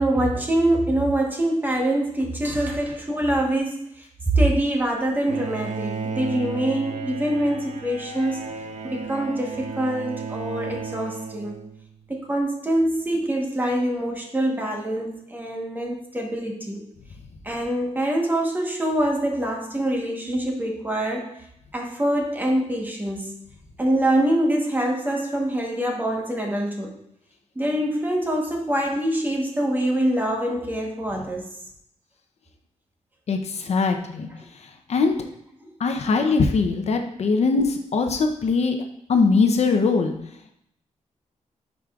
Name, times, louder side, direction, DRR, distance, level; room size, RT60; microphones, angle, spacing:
voice 1, 0.0-8.4 8.8-11.5 12.1-16.9 17.4-21.3 21.7-23.3 23.8-27.0 27.5-31.5 35.6-35.7, right 1 dB, 15° right, 0 dB, 1.2 m, -24 dB
Bowed string instrument, 5.3-12.1, right 5 dB, 80° right, 0.7 m, -34 dB
voice 2, 33.3-34.3 34.9-35.1 35.8-38.8 39.1-40.1, left 4 dB, 60° left, 5 dB, 0.7 m, -21 dB
9.6 x 4.9 x 2.4 m, 0.74 s
wide cardioid pair, 155°, 12 cm